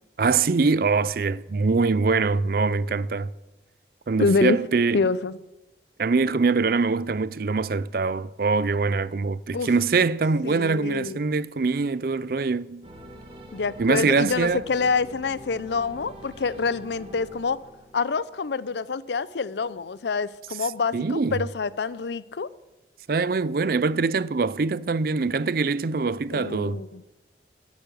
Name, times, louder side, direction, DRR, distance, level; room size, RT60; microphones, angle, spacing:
voice 1, 0.2-3.3 4.1-5.1 6.0-12.9 13.8-14.6 20.9-21.4 23.1-26.8, right 4 dB, 55° right, 0.5 m, -23 dB
voice 2, 4.2-4.6 4.9-5.4 9.5-9.7 10.4-11.2 13.5-17.6 17.9-22.5 26.3-27.0, left 4 dB, 75° left, 0.5 m, -26 dB
sound 1, 12.8-18.4, equal, 30° right, 1.7 m, -45 dB
9.9 x 9.4 x 9.1 m
head